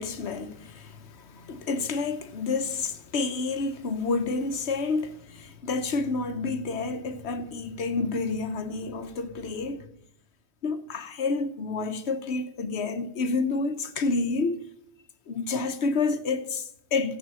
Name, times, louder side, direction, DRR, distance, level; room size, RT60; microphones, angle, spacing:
voice 1, 0.0-9.9 10.6-14.6 15.3-17.2, left 3 dB, 80° left, 1.2 m, -29 dB
14.0 x 5.7 x 7.5 m
omnidirectional pair, 1.1 m